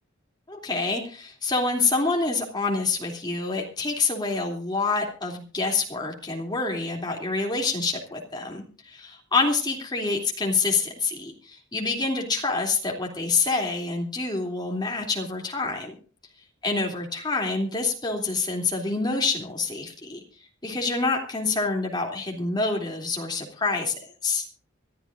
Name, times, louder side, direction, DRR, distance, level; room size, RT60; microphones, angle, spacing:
voice 1, 0.5-15.9 16.6-20.2 20.6-24.5, left 3 dB, 20° left, 1 dB, 2.9 m, -27 dB
25.0 x 13.0 x 2.6 m, 0.38 s
head